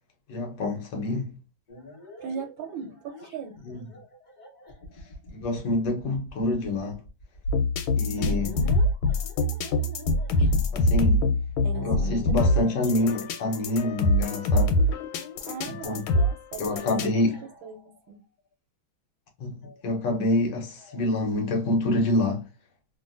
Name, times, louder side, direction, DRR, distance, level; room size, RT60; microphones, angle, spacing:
voice 1, 0.3-1.3 3.6-3.8 5.3-7.0 8.0-8.5 10.7-11.3 11.8-14.8 15.7-16.0 16.6-17.4 19.4-22.4, left 2 dB, 65° left, 1.3 m, -27 dB
sound 1, 1.7-14.3 15.1-15.7 16.6-18.1 19.6-21.0, left 2 dB, 40° left, 0.7 m, -45 dB
voice 2, 2.2-3.5 11.6-12.7 15.4-17.3 17.6-18.2, right 6 dB, 80° right, 1.4 m, -39 dB
sound 2, 7.4-17.1, left 1 dB, 85° left, 1.5 m, -24 dB
3.2 x 2.5 x 2.4 m
omnidirectional pair, 2.2 m